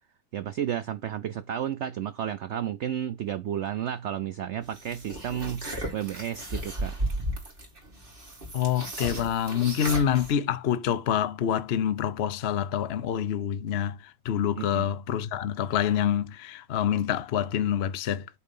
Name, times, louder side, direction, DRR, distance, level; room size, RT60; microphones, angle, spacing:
voice 1, 0.3-7.0 14.6-14.9, right 10 dB, 90° right, 0.6 m, -32 dB
sound 1, 4.7-10.3, right 1 dB, 30° right, 2.4 m, -34 dB
voice 2, 8.5-14.0 14.2-18.4, left 9 dB, 55° left, 0.7 m, -27 dB
8.2 x 3.9 x 5.3 m
omnidirectional pair, 1.8 m